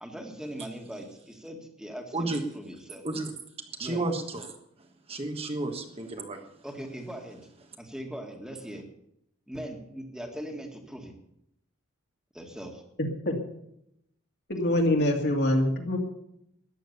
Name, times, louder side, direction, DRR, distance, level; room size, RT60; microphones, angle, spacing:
voice 1, 0.0-3.0 3.8-4.0 6.6-7.4 7.9-8.8 9.5-11.1 12.3-12.8, equal, 5° right, 3 dB, 1.9 m, -40 dB
voice 2, 3.8-4.5 5.1-6.4, right 2 dB, 30° right, 4 dB, 1.4 m, -32 dB
voice 3, 13.0-13.4 14.5-16.0, left 1 dB, 50° left, 2 dB, 2.5 m, -25 dB
13.5 x 10.5 x 6.9 m, 0.76 s
head